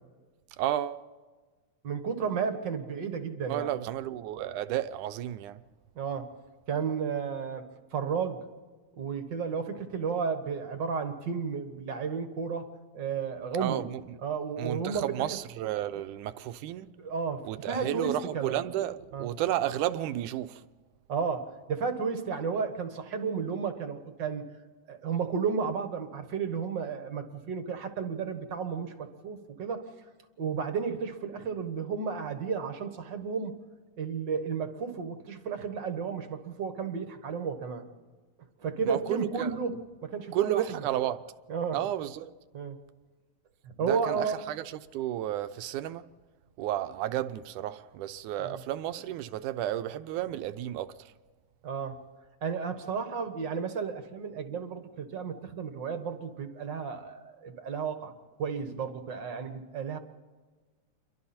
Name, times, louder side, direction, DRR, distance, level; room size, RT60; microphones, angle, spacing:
voice 1, 0.6-1.0 3.5-5.6 13.6-14.0 14.6-16.9 17.4-20.6 38.8-39.5 40.3-41.2 41.7-42.3 43.9-46.1 46.6-51.1, right 12 dB, 85° right, 2.3 m, -32 dB
voice 2, 1.8-3.7 5.9-6.3 6.7-8.4 8.9-13.9 14.2-15.0 17.0-18.6 19.1-19.3 21.1-24.5 24.9-29.9 30.4-33.5 34.0-37.9 38.6-40.6 41.5-41.8 42.5-42.8 43.6-44.4 48.4-48.6 51.6-52.0 52.4-58.1 58.4-60.0, right 6 dB, 45° right, 1.6 m, -33 dB
29.0 x 23.5 x 4.3 m
omnidirectional pair, 3.5 m